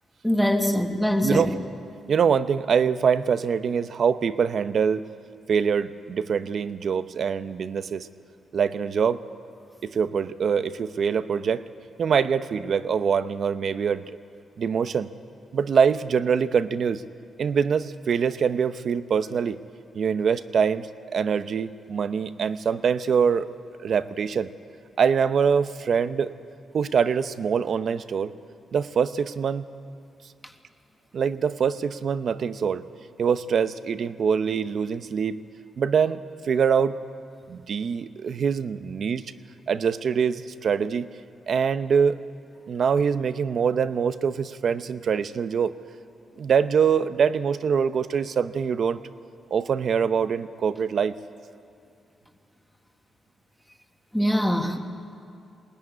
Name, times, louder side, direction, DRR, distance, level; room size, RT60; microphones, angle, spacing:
voice 1, 0.2-1.5 54.1-54.8, equal, 5° left, 4 dB, 1.6 m, -23 dB
voice 2, 1.2-1.6 2.1-5.1 5.5-8.1 8.5-9.2 9.8-11.6 12.0-14.1 14.6-15.1 15.5-17.0 17.4-19.6 19.9-23.5 23.8-24.5 25.0-26.3 26.7-28.3 28.7-29.7 31.1-32.8 33.2-35.4 35.8-36.2 36.5-37.0 37.5-39.2 39.7-41.1 41.5-42.2 42.7-45.7 46.4-49.0 49.5-51.2, right 6 dB, 60° right, 12 dB, 0.7 m, -24 dB
21.0 x 17.5 x 9.7 m, 2.4 s
cardioid pair, 100°, 0 cm